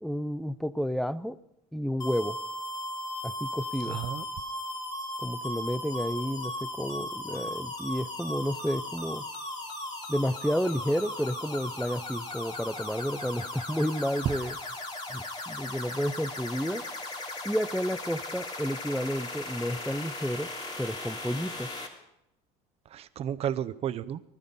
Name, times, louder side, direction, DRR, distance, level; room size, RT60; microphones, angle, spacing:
voice 1, 0.0-1.4 1.7-2.4 3.2-4.0 5.2-9.3 10.1-14.5 15.1-16.8 17.4-20.5 20.8-21.7, equal, ahead, 15 dB, 0.5 m, -31 dB
sound 1, 2.0-21.9, left 1 dB, 25° left, 3.1 m, -37 dB
voice 2, 3.9-4.2 14.2-14.4 15.1-15.3 15.7-15.9 22.9-24.2, right 10 dB, 40° right, 15 dB, 0.7 m, -33 dB
19.5 x 13.5 x 5.4 m, 0.84 s
cardioid pair, 140°, 16 cm